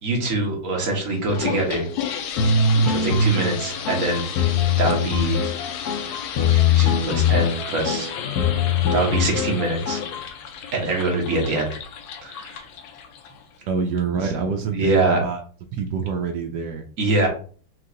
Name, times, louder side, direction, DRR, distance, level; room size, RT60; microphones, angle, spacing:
voice 1, 0.0-1.9 2.9-4.2 4.8-5.4 6.5-8.1 8.9-10.0 10.7-11.8 12.2-12.6 14.7-15.2 17.0-17.3, right 2 dB, 45° right, 0 dB, 1.4 m, -23 dB
sound 1, 1.1-13.6, left 8 dB, 90° left, 1.4 m, -33 dB
sound 2, 2.4-10.3, left 5 dB, 70° left, 0.9 m, -22 dB
voice 2, 13.7-15.4 15.7-16.9, right 5 dB, 75° right, 6 dB, 1.0 m, -26 dB
4.6 x 2.4 x 3.8 m, 0.43 s
omnidirectional pair, 2.2 m